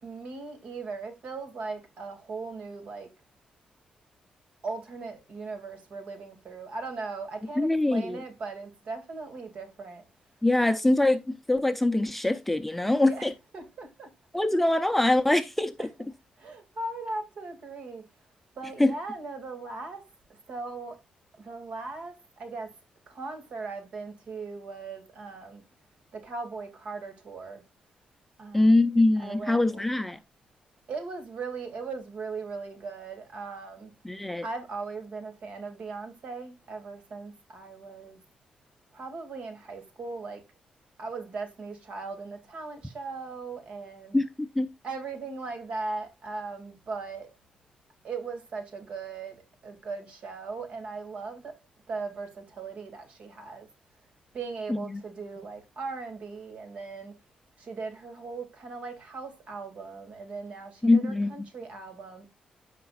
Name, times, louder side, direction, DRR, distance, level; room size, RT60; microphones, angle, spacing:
voice 1, 0.0-3.1 4.6-10.0 13.0-14.1 15.8-16.1 16.4-18.1 18.6-21.0 21.4-22.7 23.1-25.6 26.1-27.6 28.4-28.8 29.2-29.8 30.9-33.9 34.4-38.2 38.9-40.4 41.0-44.2 44.8-47.4 48.0-51.6 51.9-53.7 54.3-57.2 57.6-62.3, right 4 dB, 60° right, 2.3 m, -38 dB
voice 2, 7.6-8.2 10.4-13.3 14.3-15.9 18.8-18.9 28.5-30.2 34.1-34.4 44.1-44.7 54.7-55.0 60.8-61.3, left 2 dB, 5° left, 0.5 m, -23 dB
15.0 x 5.2 x 2.4 m
wide cardioid pair, 155°, 2 cm